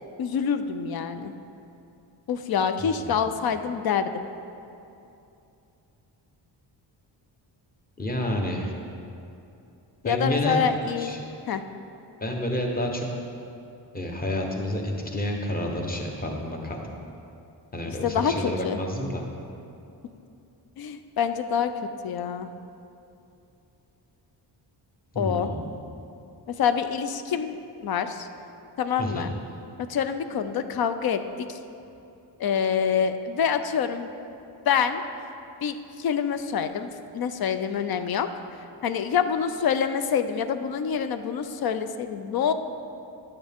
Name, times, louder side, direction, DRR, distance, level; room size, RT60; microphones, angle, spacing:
voice 1, 0.2-1.3 2.3-4.2 10.0-11.1 11.5-11.6 17.9-18.8 20.8-21.7 22.0-22.5 25.2-25.5 26.5-28.3 28.8-29.3 29.9-31.6 32.4-34.1 34.7-35.0 35.6-38.3 38.8-42.5, left 7 dB, 55° left, 10 dB, 0.5 m, -26 dB
voice 2, 2.8-3.2 8.0-8.7 10.0-10.6 11.0-11.2 12.2-13.1 13.9-16.8 17.7-19.2 25.1-25.7 29.0-29.3, left 1 dB, 20° left, 1 dB, 1.0 m, -29 dB
10.5 x 8.8 x 3.5 m, 2.7 s
wide cardioid pair, 165°, 43 cm